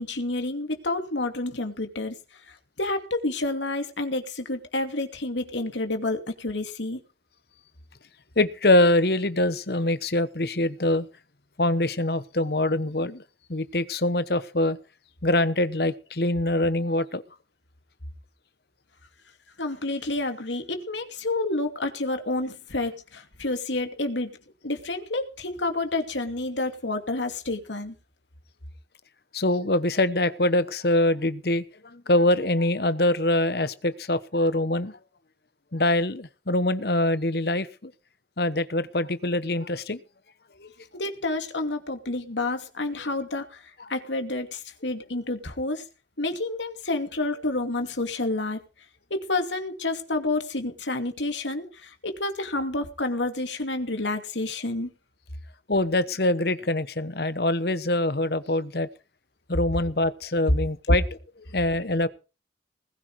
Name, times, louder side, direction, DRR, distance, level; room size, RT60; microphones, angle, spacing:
voice 1, 0.0-2.1 2.5-7.0 19.6-24.3 24.6-27.9 40.9-45.8 46.2-48.6 49.1-54.9, left 2 dB, 85° left, 6 dB, 2.6 m, -29 dB
voice 2, 8.4-11.1 11.6-13.2 13.5-14.8 15.2-17.2 29.3-35.0 35.7-37.9 38.4-40.0 40.6-40.7 55.7-58.9 59.5-61.0 61.5-62.1, left 1 dB, 60° left, 14 dB, 1.1 m, -24 dB
20.0 x 10.5 x 4.8 m, 0.33 s
head